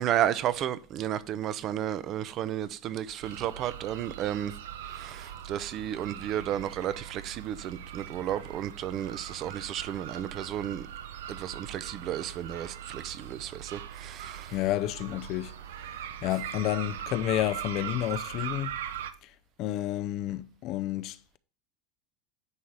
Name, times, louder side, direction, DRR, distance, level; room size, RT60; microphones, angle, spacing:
voice 1, 0.0-4.5 4.9-10.8 11.3-14.5, right 11 dB, 40° right, 0.6 m, -32 dB
sound 1, 3.2-19.1, right 10 dB, 85° right, 0.6 m, -41 dB
voice 2, 14.5-15.5 16.2-18.7 19.6-21.4, left 14 dB, 50° left, 0.5 m, -30 dB
9.7 x 3.2 x 5.5 m
supercardioid pair, 115°, 0 cm